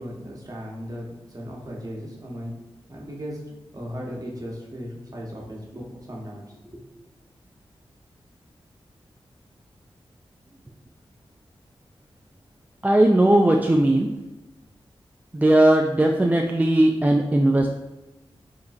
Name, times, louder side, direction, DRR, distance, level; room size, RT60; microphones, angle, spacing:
voice 1, 0.0-2.6 2.9-6.8, equal, 35° right, -3 dB, 1.2 m, -37 dB
voice 2, 12.8-14.1 15.3-17.7, right 1 dB, 15° right, 2 dB, 0.3 m, -18 dB
5.0 x 2.9 x 2.6 m, 1.0 s
cardioid pair, 50°, 10 cm